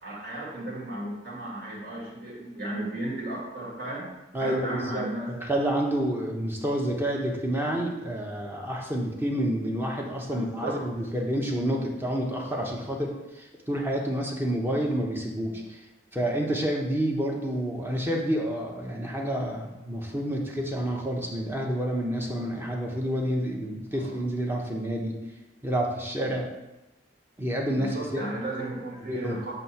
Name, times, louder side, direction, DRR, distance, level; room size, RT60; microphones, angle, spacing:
voice 1, 0.0-4.1 4.4-5.3 10.3-10.8 23.9-24.2 27.8-29.5, right 1 dB, 55° right, -4 dB, 1.8 m, -34 dB
voice 2, 4.3-15.8 16.1-25.2 25.6-26.5 27.4-28.2 29.1-29.4, right 1 dB, 10° right, 0 dB, 0.9 m, -29 dB
7.6 x 2.8 x 5.6 m, 1.0 s
head